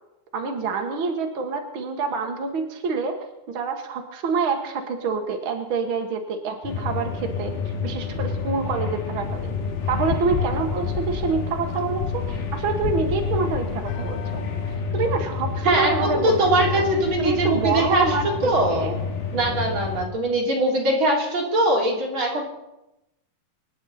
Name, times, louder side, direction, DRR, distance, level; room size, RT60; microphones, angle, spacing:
voice 1, 0.3-3.2 3.5-7.5 7.8-9.6 9.9-16.4 16.7-16.8 17.2-18.9, right 5 dB, 75° right, 4 dB, 1.1 m, -27 dB
sound 1, 6.6-20.1, left 5 dB, 65° left, 3.5 m, -29 dB
sound 2, 9.3-14.8, left 7 dB, 85° left, 3.0 m, -32 dB
voice 2, 15.6-18.1 18.4-18.9 19.3-22.5, right 1 dB, 35° right, -2 dB, 3.9 m, -22 dB
25.0 x 10.5 x 4.2 m, 0.94 s
omnidirectional pair, 4.5 m